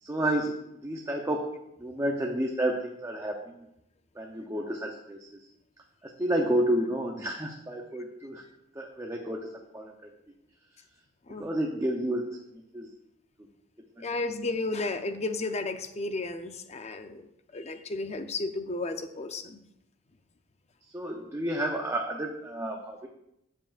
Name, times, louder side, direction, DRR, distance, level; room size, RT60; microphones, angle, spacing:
voice 1, 0.0-1.5 1.8-3.6 4.1-5.5 6.0-8.4 8.7-9.5 9.7-9.9 11.4-12.9 14.0-14.1 20.9-23.1, right 1 dB, 15° right, 1 dB, 0.7 m, -31 dB
voice 2, 14.0-19.6, left 2 dB, 35° left, 8 dB, 0.6 m, -33 dB
12.0 x 7.9 x 2.5 m, 0.81 s
head